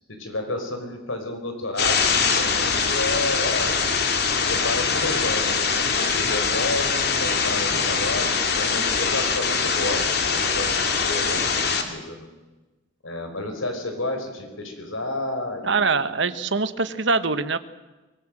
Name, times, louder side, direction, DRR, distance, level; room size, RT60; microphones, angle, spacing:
voice 1, 0.1-3.7 4.4-12.3 13.0-16.3, left 2 dB, 85° left, 5 dB, 5.2 m, -31 dB
sound 1, 1.8-11.8, left 5 dB, 50° left, 2.6 m, -23 dB
voice 2, 15.6-17.6, right 4 dB, 65° right, 12 dB, 1.3 m, -23 dB
24.0 x 21.0 x 7.8 m, 1.2 s
head